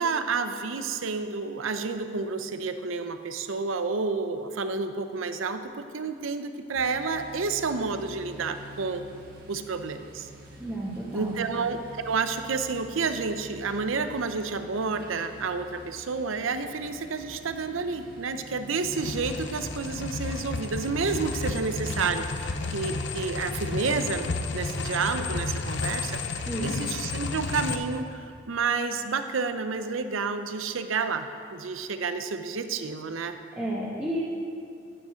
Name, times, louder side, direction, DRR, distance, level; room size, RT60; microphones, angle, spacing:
voice 1, 0.0-9.0 9.5-10.3 11.1-33.4, right 4 dB, 80° right, 9 dB, 0.6 m, -30 dB
sound 1, 6.7-24.0, equal, 45° right, 1.5 m, -48 dB
voice 2, 10.6-11.4 26.5-26.8 33.6-34.2, right 1 dB, 10° right, -8 dB, 1.3 m, -31 dB
sound 2, 18.8-27.8, left 3 dB, 60° left, 0.7 m, -32 dB
11.0 x 8.1 x 5.0 m, 2.5 s
head